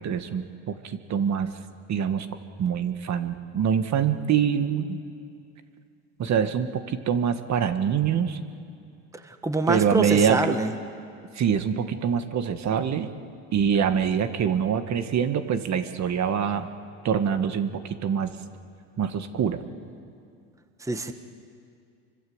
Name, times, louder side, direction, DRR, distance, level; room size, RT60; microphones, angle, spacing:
voice 1, 0.0-1.5 1.9-2.3 2.6-5.0 6.2-8.4 9.7-10.6 11.3-13.1 13.5-16.7 17.0-18.4 19.0-19.6, right 7 dB, 45° right, 9 dB, 1.8 m, -25 dB
voice 2, 9.3-10.7 20.8-21.1, right 2 dB, 10° right, 7 dB, 1.5 m, -25 dB
27.5 x 25.0 x 8.1 m, 2.4 s
supercardioid pair, 95°, 40 cm